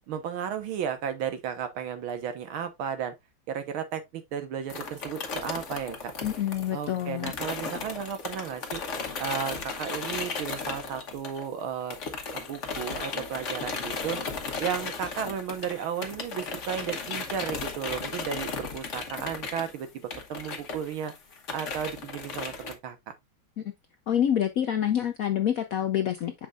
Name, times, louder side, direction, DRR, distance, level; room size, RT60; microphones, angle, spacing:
voice 1, 0.1-3.1 3.5-6.1 6.7-8.8 9.2-12.0 12.3-14.2 14.6-21.1 21.5-23.0, right 8 dB, 85° right, 1.9 m, -34 dB
sound 1, 4.7-11.6 11.9-22.7, left 4 dB, 45° left, 1.2 m, -36 dB
voice 2, 6.2-7.3 23.6-23.7 24.1-26.3, left 10 dB, 75° left, 0.8 m, -27 dB
7.4 x 5.3 x 2.4 m
omnidirectional pair, 2.2 m